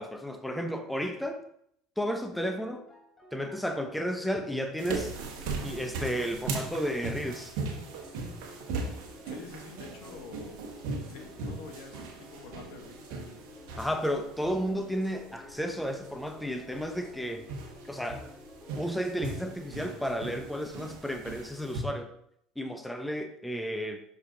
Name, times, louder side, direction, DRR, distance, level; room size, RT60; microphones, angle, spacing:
voice 1, 0.0-1.4 2.0-2.8 3.3-5.1 5.6-7.5 13.8-17.5 17.9-18.3 18.8-22.1 22.6-24.0, equal, 5° left, 6 dB, 0.8 m, -32 dB
sound 1, 2.0-20.7, left 2 dB, 20° left, 2.1 m, -52 dB
sound 2, 4.8-21.8, right 3 dB, 70° right, 1.3 m, -39 dB
voice 2, 9.3-10.6 11.1-13.1, left 4 dB, 70° left, 4 dB, 1.3 m, -47 dB
6.3 x 5.4 x 3.8 m, 0.71 s
hypercardioid pair, 75°, 0 cm